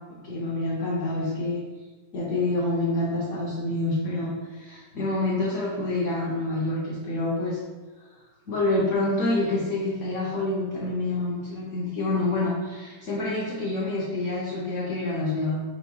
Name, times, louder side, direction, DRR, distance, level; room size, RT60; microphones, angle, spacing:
voice 1, 0.2-1.6 2.1-7.6 8.5-15.6, left 2 dB, 55° left, -5 dB, 1.0 m, -27 dB
5.2 x 4.4 x 2.3 m, 1.3 s
omnidirectional pair, 1.8 m